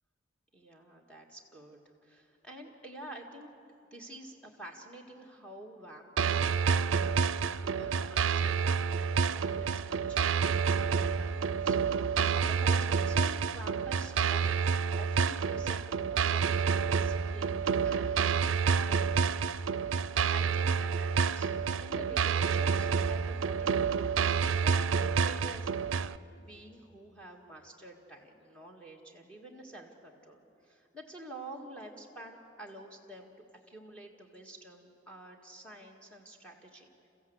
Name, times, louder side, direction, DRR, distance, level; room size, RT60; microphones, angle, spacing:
voice 1, 0.5-3.5 3.9-7.3 7.6-14.5 14.9-18.3 18.7-19.0 20.2-21.5 21.8-25.7 26.4-33.3 33.7-37.1, right 1 dB, 5° left, -2 dB, 1.8 m, -48 dB
sound 1, 6.2-26.2, right 6 dB, 85° right, 0.5 m, -29 dB
29.5 x 15.0 x 8.0 m, 2.9 s
head